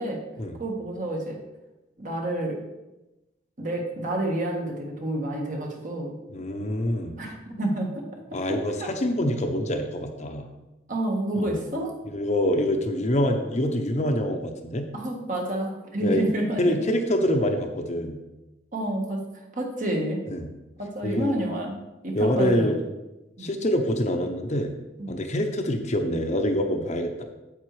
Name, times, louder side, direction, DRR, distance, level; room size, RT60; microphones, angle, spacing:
voice 1, 0.6-1.4 2.0-2.6 3.6-6.1 7.2-7.9 8.8-8.9 10.9-11.9 14.9-16.8 18.7-19.2 19.6-20.2 20.8-22.7 23.4-23.5 25.0-25.1, right 1 dB, 45° right, 0 dB, 1.5 m, -29 dB
voice 2, 6.3-7.1 8.3-10.5 11.4-11.6 12.1-14.9 16.0-16.2 16.6-18.2 20.3-20.5 21.0-21.4 22.1-22.8 23.4-24.7 25.1-27.2, left 1 dB, 35° left, 4 dB, 0.8 m, -25 dB
8.7 x 8.0 x 3.2 m, 1.0 s
head